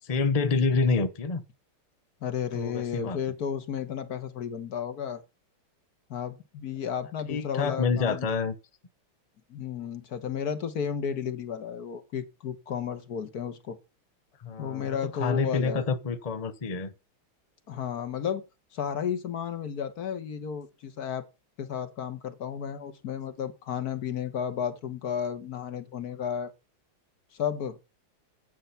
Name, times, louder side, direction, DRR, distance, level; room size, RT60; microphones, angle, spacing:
voice 1, 0.1-1.4 2.5-3.2 7.3-8.5 14.4-16.9, left 4 dB, 90° left, 0.3 m, -27 dB
voice 2, 2.2-5.2 6.1-8.3 9.5-13.8 14.6-15.8 17.7-18.4 18.7-21.3 21.6-26.5 27.3-27.8, left 8 dB, 50° left, 1.6 m, -33 dB
9.3 x 8.5 x 5.8 m
omnidirectional pair, 2.3 m